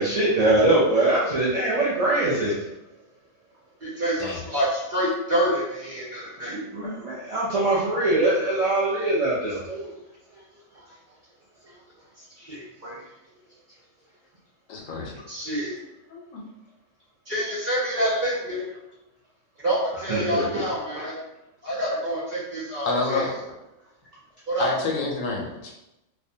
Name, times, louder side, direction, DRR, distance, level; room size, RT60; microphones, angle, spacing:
voice 1, 0.0-2.6 6.5-9.9 20.1-20.4 20.9-21.0, right 2 dB, 70° right, -8 dB, 0.3 m, -22 dB
voice 2, 3.8-6.5 12.4-13.0 15.3-15.7 17.3-18.6 19.6-21.2 21.6-23.3 24.5-24.7, equal, 40° right, -8 dB, 1.0 m, -27 dB
voice 3, 14.7-15.1 16.1-16.4 22.9-23.3 24.6-25.7, left 3 dB, 80° left, 0 dB, 1.0 m, -28 dB
2.5 x 2.1 x 2.6 m, 0.91 s
omnidirectional pair, 1.4 m